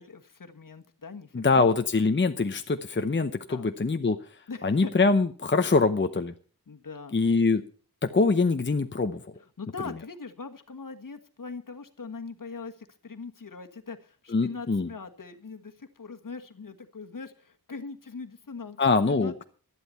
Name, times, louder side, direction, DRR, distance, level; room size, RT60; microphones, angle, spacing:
voice 1, 0.0-1.7 3.5-3.7 4.5-4.9 6.7-7.2 9.6-18.8 19.1-19.4, left 4 dB, 60° left, 5 dB, 1.5 m, -41 dB
voice 2, 1.3-4.2 4.6-6.3 7.1-7.6 8.0-9.2 14.3-14.9 18.8-19.4, left 4 dB, 30° left, 7 dB, 0.8 m, -24 dB
12.5 x 11.0 x 5.7 m, 0.41 s
wide cardioid pair, 80°, 37 cm